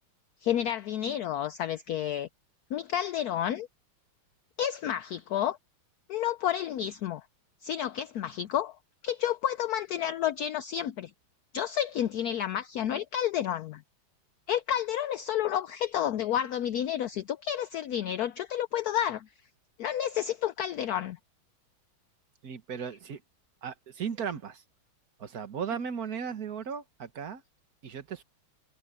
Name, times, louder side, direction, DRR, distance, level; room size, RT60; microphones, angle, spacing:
voice 1, 0.4-2.3 2.7-3.7 4.6-5.6 6.1-7.2 7.6-8.8 9.0-11.1 11.5-13.8 14.5-19.3 19.8-21.2, left 10 dB, 70° left, 0.9 m, -30 dB
voice 2, 22.4-23.2 23.6-24.6 25.2-27.4 27.8-28.2, right 7 dB, 50° right, 1.8 m, -36 dB
omnidirectional pair, 2.2 m